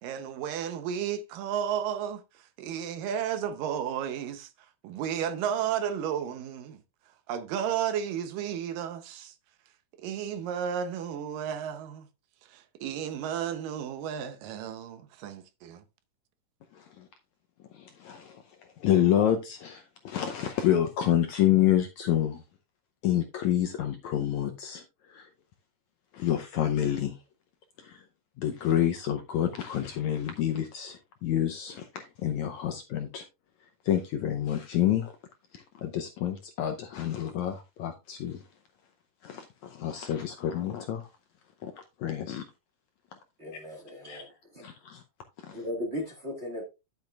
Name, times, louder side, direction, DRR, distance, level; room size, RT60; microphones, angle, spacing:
voice 1, 0.0-9.4 10.0-12.1 12.4-15.8, right 9 dB, 75° right, 2.4 m, -33 dB
voice 2, 16.7-17.1 17.7-18.4 18.8-22.4 23.0-25.3 26.1-27.2 27.8-28.0 28.4-33.2 33.8-35.1 35.5-38.4 39.2-41.1 41.6-42.4 44.1-44.2 44.6-45.0 45.4-45.6, left 11 dB, 80° left, 1.7 m, -28 dB
voice 3, 43.4-44.7 45.5-46.6, left 1 dB, 40° right, 0.9 m, -37 dB
10.5 x 7.9 x 2.4 m
omnidirectional pair, 4.1 m